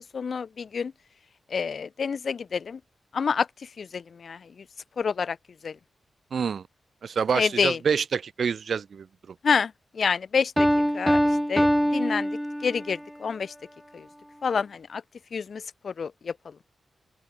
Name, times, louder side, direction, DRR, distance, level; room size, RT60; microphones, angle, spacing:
voice 1, 0.1-0.9 1.5-2.8 3.1-4.6 5.0-5.4 5.6-5.8 7.3-7.8 9.4-10.7 10.9-11.2 11.5-11.7 11.9-12.3 12.6-13.5 13.9-14.1 14.4-15.0 15.3-16.5, left 6 dB, 65° left, 7.7 m, -28 dB
voice 2, 6.3-6.6 7.0-9.3, right 6 dB, 70° right, 3.2 m, -27 dB
Piano, 10.6-13.0, equal, ahead, 1.6 m, -23 dB
open air
cardioid pair, 60°, 0 cm